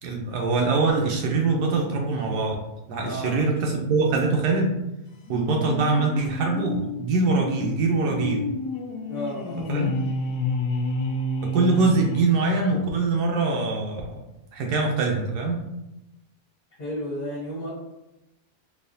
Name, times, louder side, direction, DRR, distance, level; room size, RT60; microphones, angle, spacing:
voice 1, 0.0-2.6 2.9-4.7 5.3-8.4 9.7-9.9 11.4-14.2 14.5-15.6, right 3 dB, 75° right, 1 dB, 1.1 m, -23 dB
voice 2, 3.0-3.4 9.1-9.9 16.8-17.7, equal, 30° left, -8 dB, 1.2 m, -33 dB
sound 1, 5.3-12.8, left 2 dB, 85° left, 1.2 m, -30 dB
4.0 x 2.8 x 2.6 m, 0.93 s
omnidirectional pair, 1.8 m